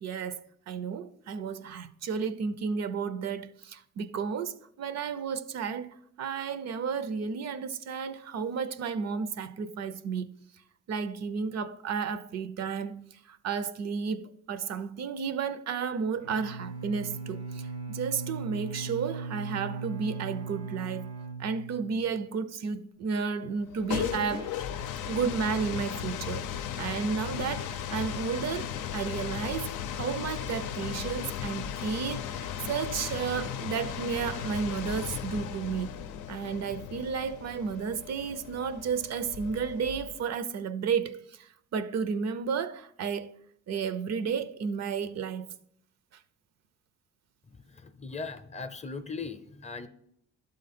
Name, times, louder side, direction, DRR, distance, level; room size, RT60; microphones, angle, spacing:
voice 1, 0.0-10.3 10.9-21.0 21.4-24.5 25.1-26.5 26.8-36.0 36.3-43.4 43.7-45.5, right 6 dB, 60° right, 0.5 m, -32 dB
Bowed string instrument, 16.2-22.2, right 4 dB, 90° right, 1.6 m, -38 dB
sound 1, 23.6-40.3, left 9 dB, 85° left, 0.5 m, -36 dB
voice 2, 47.8-49.9, left 4 dB, 20° left, 0.5 m, -38 dB
11.5 x 3.9 x 4.2 m
cardioid pair, 90°, 30 cm